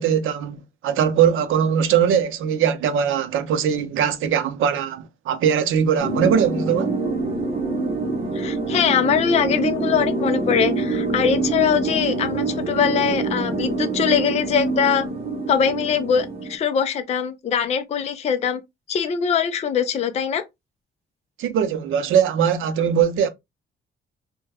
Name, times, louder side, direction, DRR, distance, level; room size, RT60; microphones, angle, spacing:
voice 1, 0.0-6.9 21.4-23.3, right 8 dB, 85° right, 0.6 m, -21 dB
sound 1, 6.0-16.6, right 3 dB, 30° right, 0.8 m, -25 dB
voice 2, 8.3-15.1 15.5-18.6 18.9-20.4, left 7 dB, 35° left, 0.4 m, -22 dB
3.2 x 2.2 x 3.3 m
wide cardioid pair, 180°, 20 cm